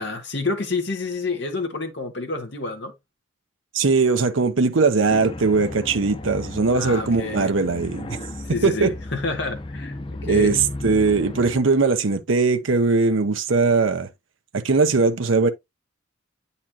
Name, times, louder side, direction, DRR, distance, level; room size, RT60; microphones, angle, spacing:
voice 1, 0.0-2.9 6.7-7.5 8.5-10.7, left 3 dB, 60° left, 1.4 m, -29 dB
voice 2, 3.7-8.2 8.5-8.9 10.3-14.1 14.5-15.5, right 4 dB, 75° right, 0.8 m, -20 dB
sound 1, 5.1-11.6, left 2 dB, 25° left, 0.5 m, -34 dB
8.7 x 4.2 x 2.9 m
head